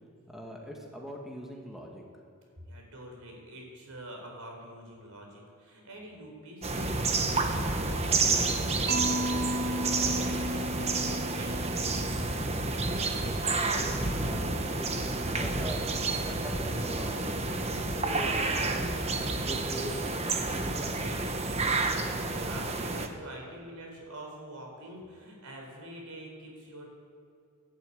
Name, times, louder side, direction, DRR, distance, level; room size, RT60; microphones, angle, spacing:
voice 1, 0.3-2.0 13.2-15.8 16.2-18.9 19.5-21.5, equal, ahead, -1 dB, 1.8 m, -42 dB
voice 2, 2.7-11.9 22.3-26.9, right 1 dB, 90° right, 1 dB, 4.3 m, -46 dB
sound 1, 6.6-23.1, right 3 dB, 30° right, 1.0 m, -30 dB
Mallet percussion, 8.9-12.9, equal, 50° right, 0.9 m, -34 dB
12.5 x 11.5 x 8.9 m, 2.3 s
head